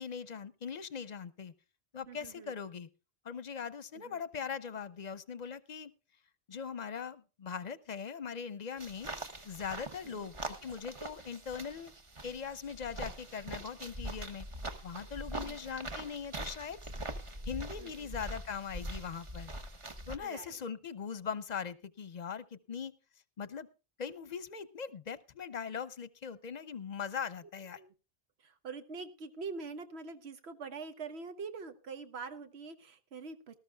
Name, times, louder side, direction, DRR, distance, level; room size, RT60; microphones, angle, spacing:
voice 1, 0.0-1.5 1.9-2.9 3.2-5.9 6.5-9.1 9.4-11.9 12.2-14.5 14.8-16.8 17.5-19.5 20.1-22.9 23.4-23.7 24.0-27.8, left 6 dB, 45° left, 17 dB, 0.7 m, -40 dB
voice 2, 2.1-2.5 3.9-4.2 10.1-10.3 15.3-15.6 17.8-18.1 20.2-20.6 27.8-27.9 28.4-33.6, right 4 dB, 85° right, 9 dB, 1.2 m, -44 dB
sound 1, 8.8-20.2, right 1 dB, 30° right, 1.0 m, -43 dB
19.0 x 13.0 x 2.3 m, 0.31 s
omnidirectional pair, 1.1 m